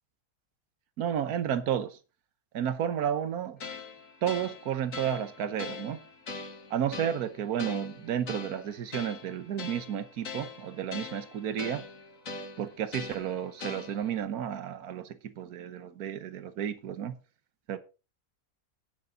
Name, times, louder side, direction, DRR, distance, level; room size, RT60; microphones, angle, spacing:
voice 1, 1.0-2.0 2.5-3.6 4.2-6.0 6.7-11.8 12.6-17.1 17.7-17.8, right 9 dB, 90° right, 1.4 m, -32 dB
sound 1, 3.6-14.2, left 4 dB, 60° left, 1.9 m, -42 dB
17.5 x 6.8 x 3.8 m
omnidirectional pair, 1.6 m